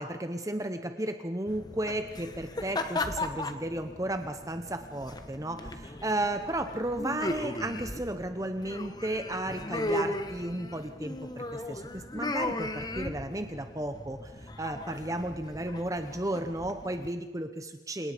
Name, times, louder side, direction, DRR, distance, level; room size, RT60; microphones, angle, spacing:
voice 1, 0.0-18.1, right 1 dB, 20° right, 8 dB, 1.0 m, -34 dB
sound 1, 1.5-17.1, left 2 dB, 20° left, 1.3 m, -37 dB
28.5 x 18.5 x 5.2 m, 1.2 s
head